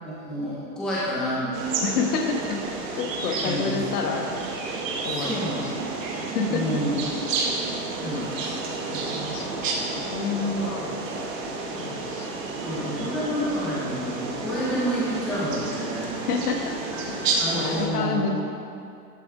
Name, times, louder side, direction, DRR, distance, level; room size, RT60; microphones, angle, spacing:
voice 1, 0.0-1.8 3.4-3.8 5.0-5.7 6.0-7.0 8.0-8.5 8.8-9.3 12.6-16.2 17.4-18.2, equal, ahead, -9 dB, 0.9 m, -29 dB
sound 1, 1.5-17.9, right 3 dB, 50° right, 1.6 m, -31 dB
voice 2, 1.8-4.3 5.0-5.9 6.2-6.7 8.0-8.2 9.2-9.8 10.1-11.3 11.8-12.3 12.7-13.1 16.1-16.7 17.1-17.3 17.5-18.4, left 4 dB, 65° left, 3 dB, 1.4 m, -29 dB
12.0 x 6.3 x 5.0 m, 2.5 s
supercardioid pair, 170°, 49 cm